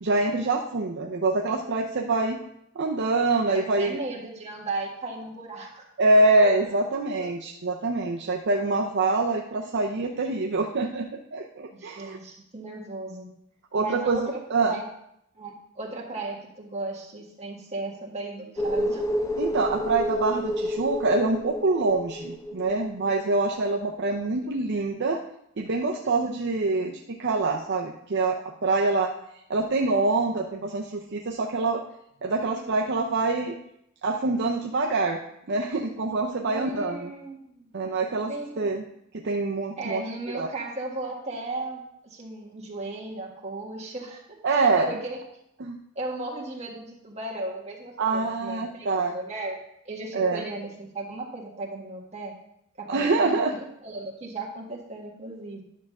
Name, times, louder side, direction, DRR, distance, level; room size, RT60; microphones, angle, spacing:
voice 1, 0.0-2.4 2.8-4.0 6.0-12.2 13.7-14.7 19.4-25.2 25.6-29.1 29.5-31.8 32.2-33.5 34.0-35.2 35.5-37.1 37.7-38.8 39.1-40.0 40.3-40.5 44.4-45.0 45.6-45.8 48.0-49.2 50.1-50.4 52.9-53.5, right 3 dB, 55° right, 1 dB, 0.6 m, -25 dB
voice 2, 3.5-5.9 6.2-6.5 7.2-7.3 11.7-13.3 13.8-14.9 15.3-19.1 36.5-37.7 38.3-38.7 39.8-45.2 45.9-49.6 49.8-52.3 52.8-55.6, right 2 dB, 30° right, -2 dB, 1.7 m, -36 dB
sound 1, 18.6-23.8 24.1-24.2, equal, 15° left, 0.5 m, -30 dB
10.5 x 3.6 x 6.4 m, 0.76 s
head